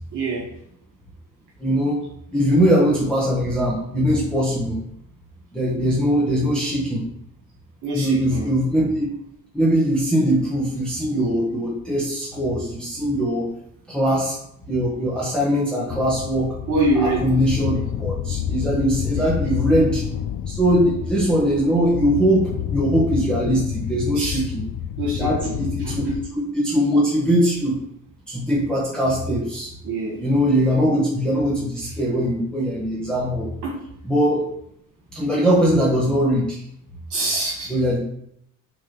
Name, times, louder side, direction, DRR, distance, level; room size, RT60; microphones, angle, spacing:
voice 1, 0.1-0.5 7.8-8.5 16.7-17.2 19.1-19.2 24.1-24.4 25.0-25.9 29.8-30.2 33.6-33.8 37.1-37.8, right 2 dB, 60° right, -3 dB, 1.9 m, -25 dB
voice 2, 1.6-2.0 2.3-4.8 5.5-7.0 7.9-9.1 9.5-13.5 13.9-14.4 14.7-16.6 16.9-20.0 20.5-24.6 25.2-27.8 28.3-29.7 30.2-33.5 34.0-34.5 35.1-36.6 37.7-38.0, equal, 5° left, -6 dB, 1.4 m, -21 dB
sound 1, 15.9-26.3, left 9 dB, 50° left, 0.5 m, -28 dB
6.2 x 4.0 x 5.8 m, 0.72 s
cardioid pair, 150°, 34 cm